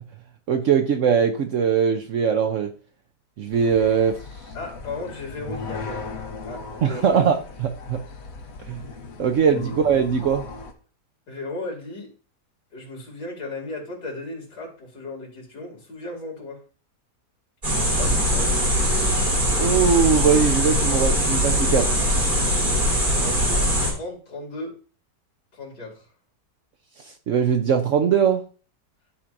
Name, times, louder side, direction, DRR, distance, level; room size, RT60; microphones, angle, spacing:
voice 1, 0.5-2.7 3.4-4.2 6.8-8.0 8.7-8.8 9.2-10.4 19.6-21.9 27.3-28.4, right 7 dB, 65° right, 5 dB, 0.8 m, -21 dB
sound 1, 3.5-10.7, left 4 dB, 60° left, 1.4 m, -37 dB
voice 2, 4.5-6.0 6.4-7.2 9.5-9.6 11.3-12.1 12.7-16.6 18.0-18.9 23.1-24.8 25.5-26.0, left 2 dB, 75° left, -1 dB, 3.1 m, -36 dB
sound 2, 17.6-23.9, equal, 30° right, 2.6 m, -21 dB
13.0 x 4.4 x 2.5 m, 0.38 s
omnidirectional pair, 1.8 m